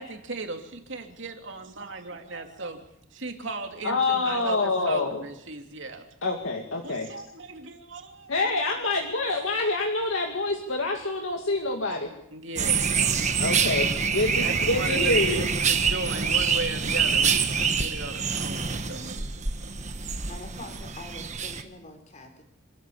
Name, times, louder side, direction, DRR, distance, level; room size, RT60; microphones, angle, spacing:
voice 1, 0.0-2.8 3.1-6.1 6.8-8.4 12.3-13.6 14.3-19.5, right 3 dB, 65° right, 4 dB, 2.8 m, -37 dB
voice 2, 3.8-5.2 6.2-7.1 8.3-12.1 13.4-15.5, left 2 dB, 70° left, 2 dB, 2.2 m, -26 dB
sound 1, 12.6-21.6, right 6 dB, 35° right, 1.5 m, -26 dB
voice 3, 20.3-22.4, left 2 dB, 35° left, 5 dB, 4.1 m, -44 dB
26.5 x 13.0 x 8.6 m, 0.76 s
head